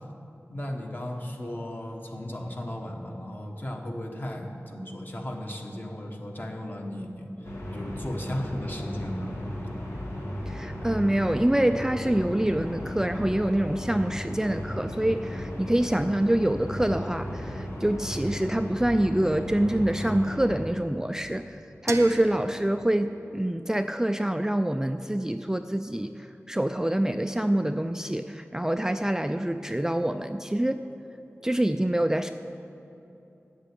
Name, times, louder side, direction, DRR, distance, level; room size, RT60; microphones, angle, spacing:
voice 1, 0.5-9.3, left 1 dB, 40° left, 2 dB, 1.3 m, -36 dB
sound 1, 7.4-20.6, equal, 75° left, 1.9 m, -35 dB
voice 2, 10.5-21.6 21.8-30.9 31.4-32.3, right 1 dB, 10° right, 8 dB, 0.3 m, -26 dB
sound 2, 21.9-24.7, right 3 dB, 85° right, 0.8 m, -41 dB
8.3 x 7.7 x 8.4 m, 2.9 s
wide cardioid pair, 55°, 5 cm